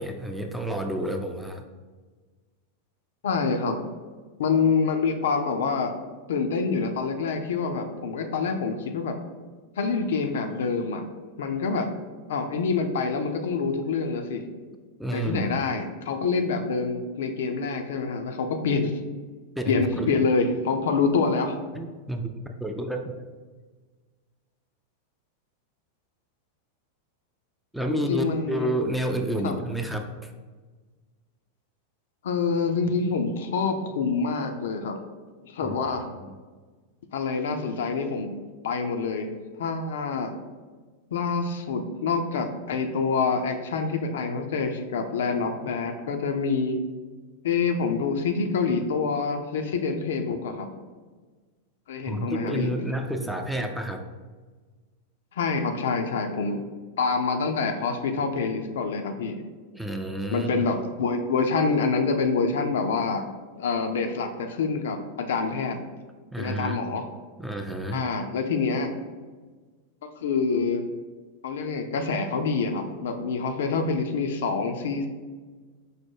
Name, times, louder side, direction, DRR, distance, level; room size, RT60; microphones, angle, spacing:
voice 1, 0.0-1.6 15.0-15.5 19.6-20.2 21.7-23.2 27.7-30.3 35.6-35.7 36.2-36.4 52.1-54.0 59.7-60.6 66.3-66.8 67.4-68.1, right 1 dB, ahead, 4 dB, 0.4 m, -30 dB
voice 2, 3.2-3.8 4.4-5.9 6.3-9.2 9.8-11.1 11.4-11.9 12.3-14.4 15.1-19.0 19.7-21.6 27.9-28.7 29.4-29.6 32.2-35.0 35.4-36.1 37.1-38.3 38.6-39.3 39.6-40.3 41.1-46.8 47.4-50.7 51.9-52.7 55.3-56.6 57.0-59.4 60.3-63.2 63.5-65.8 66.4-67.0 67.9-68.9 70.0-70.8 71.4-75.1, left 4 dB, 60° left, 5 dB, 0.4 m, -26 dB
4.8 x 2.1 x 4.5 m, 1.4 s
figure-of-eight pair, 90°, 0 cm